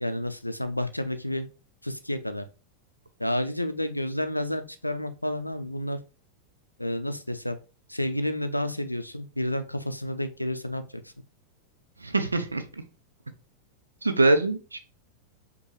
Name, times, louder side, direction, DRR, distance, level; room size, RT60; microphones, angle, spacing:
voice 1, 0.0-1.5 1.8-2.5 3.2-6.0 6.8-7.6 7.9-11.0, left 1 dB, 85° left, 9 dB, 0.4 m, -30 dB
voice 2, 12.0-12.6 14.0-14.8, right 2 dB, 80° right, 8 dB, 0.5 m, -23 dB
5.2 x 2.2 x 3.2 m, 0.32 s
figure-of-eight pair, 90°, 0 cm